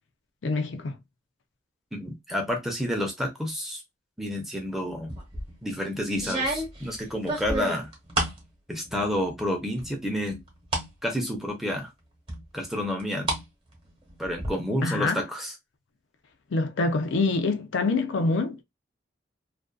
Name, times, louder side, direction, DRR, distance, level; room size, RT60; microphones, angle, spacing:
voice 1, 0.4-1.0 14.8-15.2 16.5-18.6, left 3 dB, 80° left, 0.5 m, -25 dB
voice 2, 1.9-3.8 4.2-5.2 5.6-7.9 8.7-10.4 11.0-11.9 12.5-13.3 14.2-15.5, equal, ahead, 0.6 m, -30 dB
sound 1, 5.1-5.5 6.2-8.4 8.9-9.4 9.8-10.9 11.3-11.4 12.3-13.4 13.7-14.5, right 1 dB, 30° right, 0.9 m, -31 dB
2.5 x 2.3 x 2.2 m
head